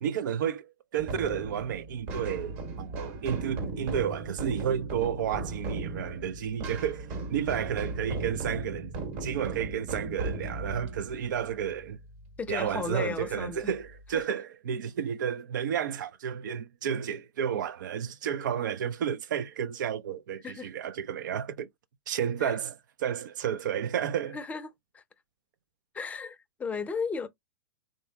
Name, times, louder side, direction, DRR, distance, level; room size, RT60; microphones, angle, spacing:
voice 1, 0.0-8.9 9.2-12.0 12.5-21.7 22.1-22.7 23.0-24.4, right 8 dB, 65° right, 0.5 m, -31 dB
sound 1, 1.0-12.4, right 3 dB, 50° right, 1.4 m, -37 dB
voice 2, 12.4-13.7 14.1-14.2 20.4-20.7 22.4-22.6 24.3-25.0 25.9-27.3, left 5 dB, 15° left, 0.5 m, -35 dB
3.6 x 2.6 x 2.3 m
hypercardioid pair, 110°, 11 cm